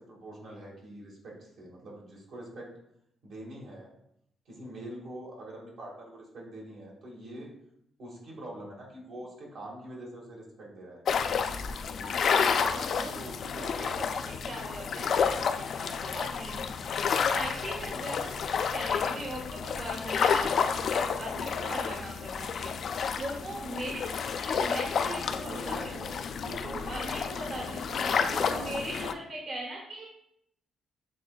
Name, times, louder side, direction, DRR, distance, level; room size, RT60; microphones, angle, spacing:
voice 1, 0.0-2.7 3.2-3.9 4.4-7.5 8.0-11.0 11.9-12.6 13.0-14.1 22.5-22.8 25.1-26.8 27.5-28.8, right 1 dB, 70° right, -3 dB, 1.7 m, -44 dB
sound 1, 11.1-29.1, left 6 dB, 60° left, 0.3 m, -30 dB
voice 2, 12.4-14.1 14.4-16.7 17.2-22.7 23.1-26.0 26.9-30.1, right 1 dB, 50° right, -2 dB, 1.0 m, -40 dB
7.5 x 3.1 x 2.3 m, 0.76 s
cardioid pair, 90°, 0 cm